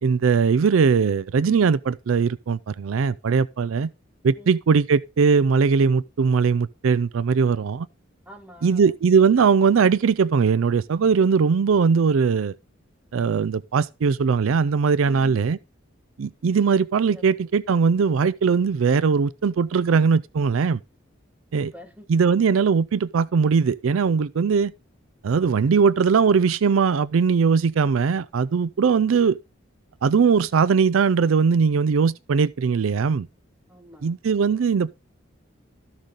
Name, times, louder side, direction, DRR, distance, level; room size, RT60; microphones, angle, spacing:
voice 1, 0.0-3.9 4.2-7.9 8.6-12.5 13.1-15.6 16.2-20.8 21.5-21.7 22.1-24.7 25.2-29.4 30.0-33.3 34.0-34.9, right 5 dB, 80° right, 0.4 m, -20 dB
voice 2, 8.2-8.9 15.0-15.5 17.1-17.5 21.5-22.4 33.7-34.1, equal, 5° right, 1.4 m, -47 dB
13.5 x 6.4 x 3.7 m
head